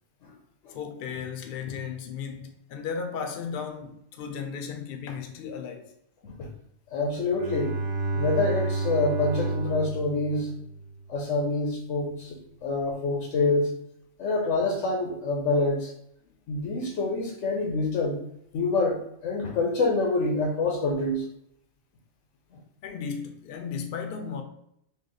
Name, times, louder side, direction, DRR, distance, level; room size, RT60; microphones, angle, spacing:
voice 1, 0.7-5.9 22.8-24.4, left 6 dB, 60° left, 0.6 m, -35 dB
voice 2, 6.9-7.7 8.1-10.5 11.1-13.7 14.2-15.9 16.5-18.2 18.5-21.2, left 3 dB, 90° left, 1.0 m, -26 dB
Bowed string instrument, 7.3-11.1, right 3 dB, 55° right, 0.8 m, -30 dB
3.2 x 2.3 x 3.8 m
omnidirectional pair, 1.2 m